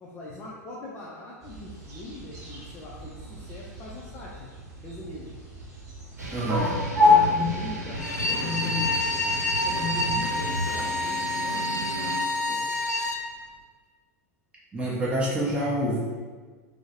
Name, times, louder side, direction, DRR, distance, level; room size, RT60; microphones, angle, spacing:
voice 1, 0.0-4.5 4.8-5.3 7.1-12.8, left 2 dB, 20° left, -5 dB, 0.5 m, -42 dB
sound 1, 1.4-8.0, left 3 dB, 35° right, 1.0 m, -27 dB
sound 2, 6.2-12.2, left 1 dB, 85° right, 0.8 m, -33 dB
voice 2, 6.3-6.8 14.7-16.0, right 1 dB, 10° right, -6 dB, 0.8 m, -27 dB
Bowed string instrument, 7.9-13.2, left 2 dB, 90° left, 0.4 m, -28 dB
4.4 x 2.1 x 2.9 m, 1.5 s
figure-of-eight pair, 90°, 9 cm